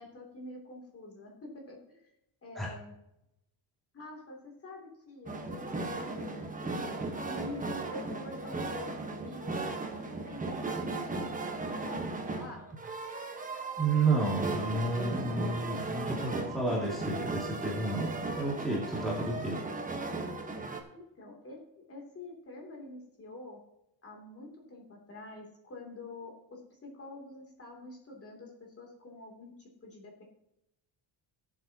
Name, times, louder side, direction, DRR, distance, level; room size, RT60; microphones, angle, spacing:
voice 1, 0.0-2.0 2.4-2.9 3.9-12.7 20.9-23.6 24.0-30.2, left 2 dB, 30° left, 0 dB, 2.9 m, -46 dB
sound 1, 5.3-20.8, right 3 dB, 15° right, 1.2 m, -36 dB
voice 2, 13.8-19.6, right 3 dB, ahead, -5 dB, 2.4 m, -31 dB
17.5 x 7.6 x 2.9 m, 0.85 s
cardioid pair, 160°, 46 cm